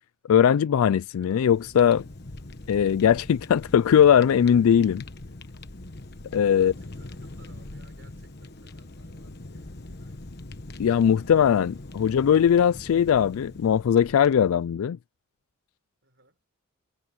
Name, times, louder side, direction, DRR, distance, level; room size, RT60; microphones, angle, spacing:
voice 1, 0.3-2.0 2.7-5.0 6.3-6.7 10.8-15.0, left 8 dB, 80° left, 0.3 m, -20 dB
Fire, 1.1-14.7, left 2 dB, 45° left, 1.3 m, -42 dB
voice 2, 6.5-10.4 16.0-16.4, right 2 dB, 55° right, 4.9 m, -60 dB
head